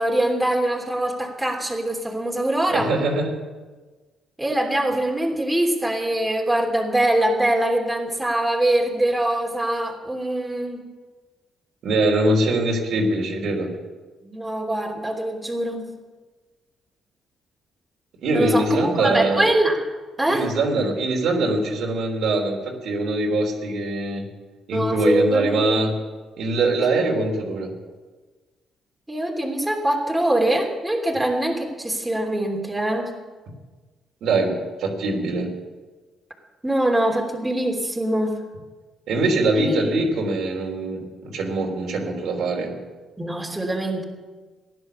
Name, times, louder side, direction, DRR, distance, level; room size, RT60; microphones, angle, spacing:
voice 1, 0.0-2.9 4.4-10.8 14.2-15.8 18.3-19.8 20.2-20.5 24.7-25.8 29.1-33.1 36.6-38.3 39.6-39.9 43.2-44.0, right 1 dB, 10° right, 0 dB, 3.1 m, -23 dB
voice 2, 2.7-3.3 11.8-13.7 18.2-19.4 20.3-24.3 24.7-26.0 26.4-27.7 34.2-35.5 39.1-42.7, right 2 dB, 75° right, 1 dB, 3.3 m, -22 dB
15.5 x 11.0 x 6.9 m, 1.3 s
cardioid pair, 90°, 0 cm